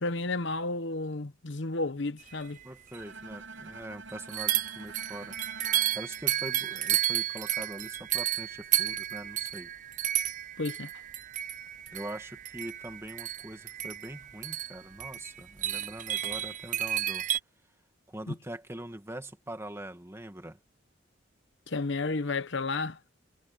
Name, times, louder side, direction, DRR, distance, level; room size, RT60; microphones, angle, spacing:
voice 1, 0.0-2.6 10.6-10.9 18.3-18.4 21.7-23.0, left 3 dB, 65° left, 1.1 m, -32 dB
voice 2, 2.6-5.4 5.9-9.7 11.9-17.3 18.1-20.6, right 1 dB, 15° right, 2.1 m, -43 dB
sound 1, 2.6-2.7 2.9-3.0 4.3-17.4, right 12 dB, 40° right, 0.6 m, -32 dB
Bowed string instrument, 3.0-7.1, right 4 dB, 75° right, 7.4 m, -47 dB
head